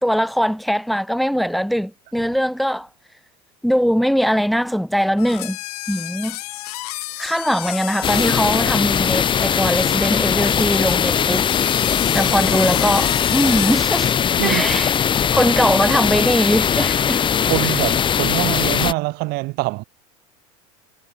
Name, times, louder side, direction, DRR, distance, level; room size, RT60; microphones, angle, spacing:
voice 1, 0.0-2.9 3.6-5.6 5.9-6.4 7.2-11.4 12.1-14.1 14.4-14.9 15.3-17.2, equal, ahead, 5.0 m, -21 dB
sound 1, 5.2-14.0, left 18 dB, 85° left, 3.5 m, -32 dB
sound 2, 8.0-18.9, left 8 dB, 25° left, 1.9 m, -20 dB
voice 2, 14.4-14.7 17.5-19.8, right 23 dB, 55° right, 7.4 m, -24 dB
supercardioid pair, 130°, 19 cm